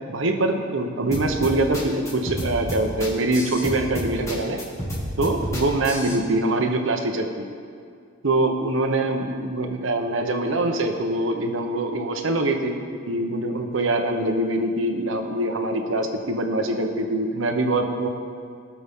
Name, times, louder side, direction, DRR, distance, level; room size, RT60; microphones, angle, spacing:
voice 1, 0.1-4.6 5.2-7.4 8.2-12.8 13.1-18.1, right 2 dB, 70° right, 5 dB, 0.9 m, -24 dB
sound 1, 1.1-6.2, equal, 15° left, 1.8 m, -30 dB
17.5 x 6.0 x 3.7 m, 2.2 s
head